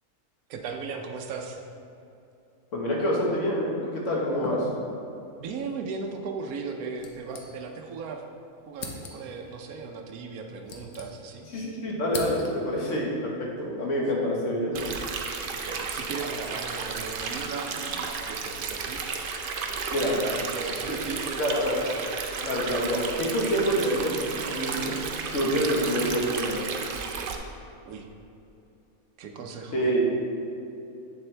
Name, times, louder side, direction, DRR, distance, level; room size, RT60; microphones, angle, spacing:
voice 1, 0.5-1.6 5.4-8.2 8.7-11.5 15.5-19.0 19.7-22.1 27.8-28.1 29.2-29.9, right 4 dB, 80° right, 3 dB, 1.1 m, -37 dB
voice 2, 2.7-4.7 11.5-14.7 19.9-20.1 20.9-21.0 21.4-21.8 22.4-25.0 25.2-26.7 29.7-30.0, equal, 60° left, -3 dB, 1.7 m, -27 dB
sound 1, 7.0-8.0 8.2-8.3 8.7-9.4 10.3-11.5 11.8-12.8, left 4 dB, 85° left, 1.3 m, -41 dB
Stream, 14.7-27.3, right 5 dB, 65° right, 0.5 m, -33 dB
7.7 x 7.1 x 3.3 m, 2.8 s
omnidirectional pair, 1.5 m